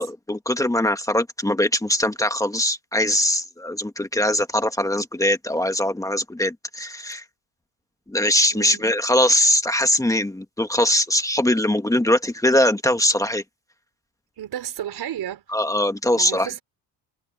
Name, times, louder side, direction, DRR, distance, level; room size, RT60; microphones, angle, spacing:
voice 1, 0.0-7.2 8.1-13.4 15.5-16.5, left 1 dB, 5° left, 1.7 m, -21 dB
voice 2, 8.5-8.9 14.4-15.4 16.2-16.6, right 11 dB, 50° right, 5.0 m, -32 dB
cardioid pair, 120°, 49 cm